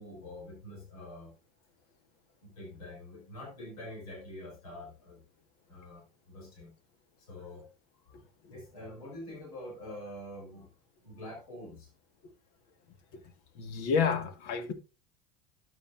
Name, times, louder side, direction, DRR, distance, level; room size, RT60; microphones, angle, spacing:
voice 1, 0.0-1.3 2.4-5.2 5.7-6.7 7.2-7.7 8.0-8.1 8.5-10.7 11.0-11.9, left 1 dB, 80° left, 4.5 m, -46 dB
voice 2, 13.6-14.7, left 6 dB, 65° left, 1.8 m, -30 dB
12.5 x 9.5 x 2.6 m
hypercardioid pair, 75°, 18 cm